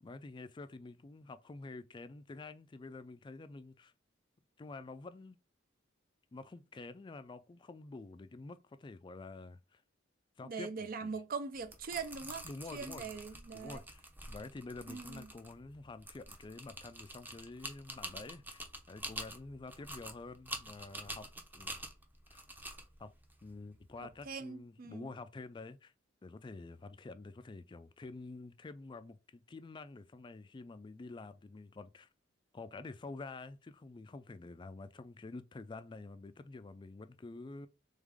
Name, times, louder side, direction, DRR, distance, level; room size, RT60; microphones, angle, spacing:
voice 1, 0.0-3.9 4.6-5.4 6.3-9.8 10.4-10.7 11.0-11.2 12.4-13.2 13.5-18.6 18.9-21.3 21.5-21.7 22.3-22.4 23.0-23.1 23.4-25.9 26.2-32.1 32.5-37.7, left 3 dB, 25° left, 0.3 m, -48 dB
voice 2, 10.4-12.5 12.7-13.8 14.9-15.3 24.3-25.1, right 5 dB, 50° right, 0.5 m, -42 dB
sound 1, 11.5-24.3, right 1 dB, 10° right, 0.7 m, -47 dB
3.7 x 3.5 x 3.5 m
head